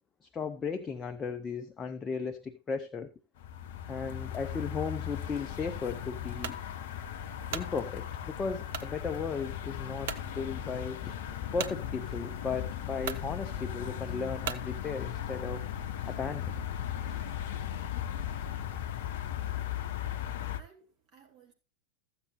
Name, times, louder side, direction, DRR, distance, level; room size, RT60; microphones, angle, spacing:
voice 1, 0.2-3.1 3.9-6.5 7.5-11.1 11.5-15.7 16.0-16.6, left 5 dB, 20° left, 0.7 m, -36 dB
sound 1, 3.4-20.6, left 10 dB, 55° left, 0.7 m, -37 dB
sound 2, 6.4-6.6 7.2-7.7 8.7-8.9 9.5-9.6 10.0-10.3 11.6-11.8 12.6-12.7 13.0-13.3 14.4-14.7, right 9 dB, 55° right, 0.7 m, -37 dB
sound 3, 10.2-17.4, equal, 5° right, 4.4 m, -58 dB
voice 2, 20.0-21.5, right 5 dB, 35° right, 2.7 m, -60 dB
14.0 x 7.6 x 3.1 m
figure-of-eight pair, 90°, 0 cm